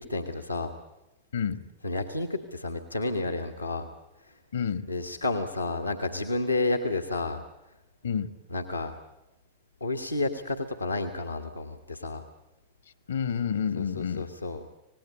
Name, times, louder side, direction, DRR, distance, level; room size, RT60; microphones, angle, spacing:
voice 1, 0.1-0.7 1.8-3.9 4.9-7.4 8.5-8.9 9.8-12.2 13.8-14.6, left 2 dB, 85° left, 3 dB, 1.4 m, -30 dB
voice 2, 1.3-1.6 4.5-4.9 8.0-8.3 13.1-14.3, left 7 dB, 70° left, 13 dB, 1.4 m, -29 dB
26.0 x 19.0 x 8.6 m, 0.95 s
figure-of-eight pair, 90°, 0 cm